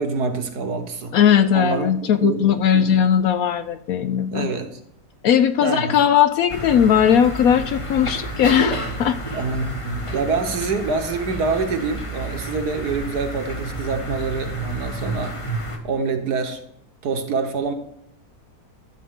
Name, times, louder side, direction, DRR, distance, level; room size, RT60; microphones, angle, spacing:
voice 1, 0.0-1.1 1.5-2.5 2.7-3.0 4.3-4.8 5.6-5.9 9.3-15.4 15.8-16.6 17.0-17.7, right 4 dB, 70° right, 6 dB, 1.5 m, -26 dB
voice 2, 1.1-4.5 5.2-9.2, left 8 dB, 70° left, 11 dB, 0.9 m, -18 dB
sound 1, 6.5-15.8, right 1 dB, 20° left, 1.1 m, -30 dB
12.5 x 7.5 x 3.6 m, 0.72 s
omnidirectional pair, 1.9 m